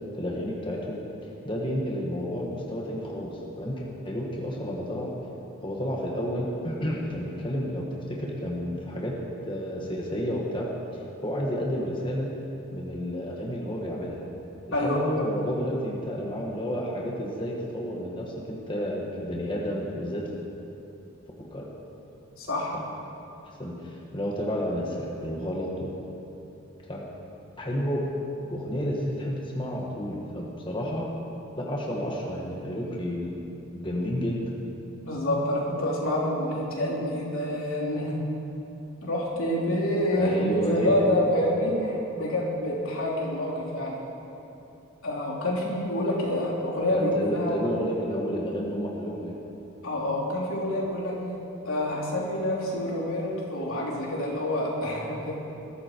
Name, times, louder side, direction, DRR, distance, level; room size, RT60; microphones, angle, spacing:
voice 1, 0.2-1.0 1.4-5.1 5.6-9.2 9.4-12.3 12.7-14.2 14.7-20.3 21.4-21.6 23.4-25.9 26.9-27.0 27.6-28.0 28.5-31.1 31.6-33.4 33.7-34.5 40.1-41.2 46.9-49.4, equal, 25° left, -3 dB, 1.5 m, -31 dB
voice 2, 22.4-22.7 35.0-38.1 39.0-44.0 45.0-47.6 49.8-51.2 51.7-55.3, left 1 dB, 80° left, -4 dB, 3.4 m, -27 dB
20.5 x 13.5 x 4.6 m, 2.9 s
head